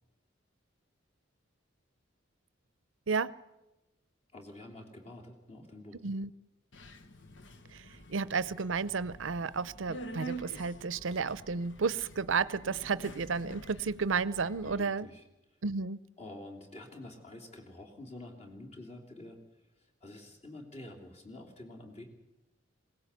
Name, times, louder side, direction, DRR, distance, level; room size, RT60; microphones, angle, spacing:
voice 1, 4.3-6.0 14.6-15.3 16.2-19.4 19.8-22.0, left 1 dB, 35° left, 3.1 m, -48 dB
Subway metro underground, 6.7-14.8, right 2 dB, 65° left, 1.2 m, -47 dB
voice 2, 8.1-15.1 15.6-16.0, right 5 dB, 80° right, 0.7 m, -32 dB
21.5 x 18.0 x 8.3 m
head